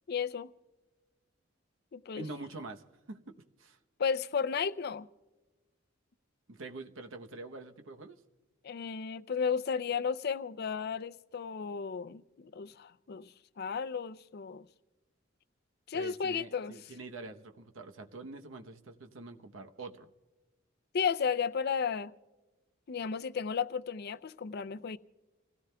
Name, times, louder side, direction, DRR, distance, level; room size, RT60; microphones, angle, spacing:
voice 1, 0.1-0.5 1.9-2.2 4.0-5.1 8.6-14.7 15.9-16.7 20.9-22.1 22.9-25.0, left 6 dB, 55° left, 0.4 m, -34 dB
voice 2, 2.1-3.8 6.5-8.2 15.9-20.1, right 2 dB, 90° right, 0.9 m, -45 dB
30.0 x 16.5 x 2.2 m
head